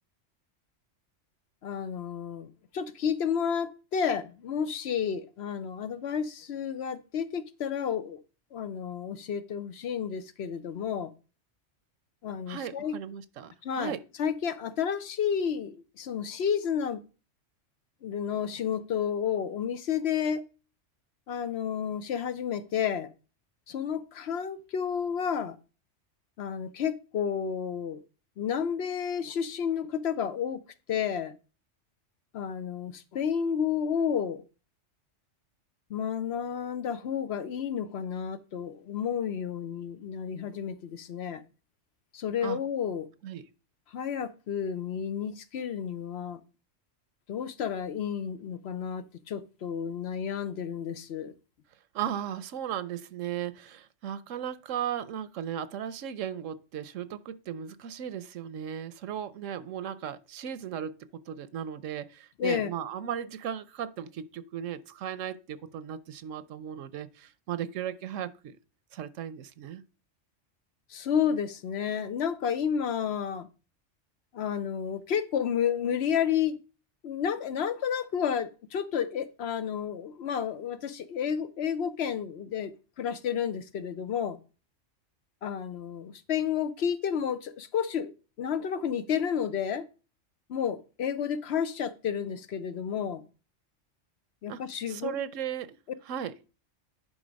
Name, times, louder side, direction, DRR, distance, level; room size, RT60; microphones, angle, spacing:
voice 1, 1.6-8.2 8.5-11.1 12.2-13.0 13.6-17.0 18.0-20.4 21.3-23.1 23.7-25.6 26.4-28.0 28.4-30.6 30.9-31.3 32.3-34.4 35.9-41.4 42.1-43.1 43.9-46.4 47.3-51.3 62.4-62.7 70.9-73.5 74.3-76.6 77.0-84.4 85.4-89.9 90.5-93.2 94.4-95.2, left 8 dB, 65° left, 0.9 m, -31 dB
voice 2, 12.5-14.0 42.4-42.6 43.2-43.4 51.9-60.9 61.3-68.6 68.9-69.8 94.5-94.6 94.9-95.8 96.1-96.3, right 9 dB, 90° right, 1.1 m, -36 dB
10.5 x 3.7 x 5.2 m
omnidirectional pair, 1.3 m